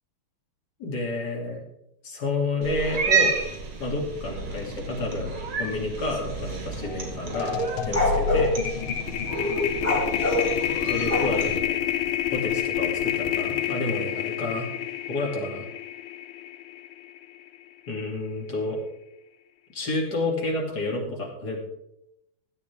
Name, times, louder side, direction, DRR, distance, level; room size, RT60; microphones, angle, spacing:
voice 1, 0.8-1.6 2.0-3.3 3.8-5.3 5.6-7.6 7.8-8.5 10.8-11.8 12.3-14.7 15.1-15.7 17.9-18.8 19.7-21.6, left 2 dB, 50° left, 0 dB, 3.2 m, -30 dB
Cat, 2.6-11.6, right 3 dB, 70° right, 2.9 m, -30 dB
sound 1, 6.8-7.0 7.3-17.6, left 11 dB, 85° left, 1.7 m, -29 dB
sound 2, 7.8-8.5 9.7-11.6, left 1 dB, 25° left, 4.4 m, -24 dB
15.5 x 11.0 x 3.5 m, 0.83 s
omnidirectional pair, 2.4 m